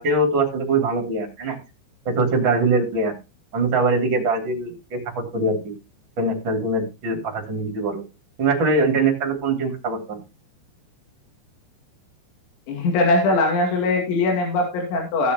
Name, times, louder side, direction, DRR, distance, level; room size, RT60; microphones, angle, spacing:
voice 1, 0.0-1.6 2.0-3.1 3.5-5.6 6.2-8.0 8.4-10.2, right 3 dB, 30° right, 2 dB, 3.1 m, -22 dB
voice 2, 12.7-15.3, left 2 dB, 80° left, 1 dB, 4.8 m, -21 dB
16.5 x 7.0 x 3.1 m, 0.26 s
omnidirectional pair, 5.3 m